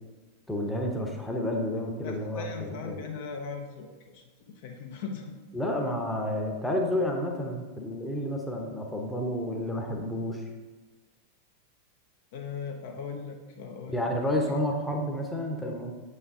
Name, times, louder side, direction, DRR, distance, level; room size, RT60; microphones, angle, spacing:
voice 1, 0.5-3.1 5.5-10.4 13.9-15.9, left 1 dB, 5° left, 1 dB, 0.8 m, -30 dB
voice 2, 2.0-5.4 12.3-14.1 14.5-14.6, left 5 dB, 50° left, 3 dB, 0.6 m, -39 dB
7.3 x 4.0 x 3.7 m, 1.3 s
figure-of-eight pair, 90°, 0 cm